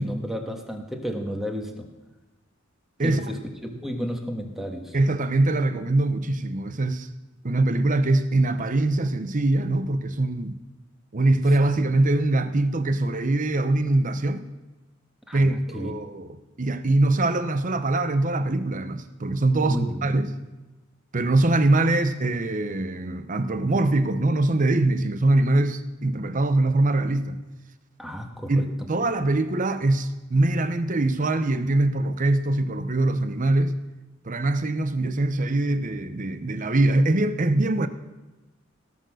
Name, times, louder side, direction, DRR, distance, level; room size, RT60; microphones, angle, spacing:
voice 1, 0.0-1.9 3.0-3.4 3.8-4.9 15.3-15.9 19.6-20.2 28.0-28.7, equal, ahead, 3 dB, 1.5 m, -32 dB
voice 2, 4.9-7.1 7.4-10.6 11.1-14.4 15.3-20.3 21.1-27.4 28.5-33.8 34.2-37.9, right 2 dB, 40° right, 10 dB, 0.8 m, -23 dB
17.5 x 6.8 x 6.4 m, 1.1 s
head